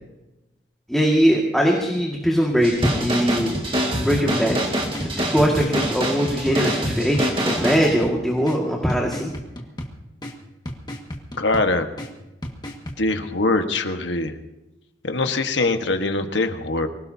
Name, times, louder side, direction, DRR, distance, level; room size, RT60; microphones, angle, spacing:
voice 1, 0.9-3.6 4.0-4.6 5.0-9.3, equal, ahead, -2 dB, 2.0 m, -21 dB
sound 1, 2.6-7.9, equal, 30° right, 2.1 m, -25 dB
sound 2, 4.5-13.0, equal, 25° left, 1.8 m, -36 dB
voice 2, 11.4-11.9 13.0-14.3 15.0-16.9, left 2 dB, 85° left, 6 dB, 1.5 m, -22 dB
24.5 x 17.5 x 2.8 m, 0.98 s
head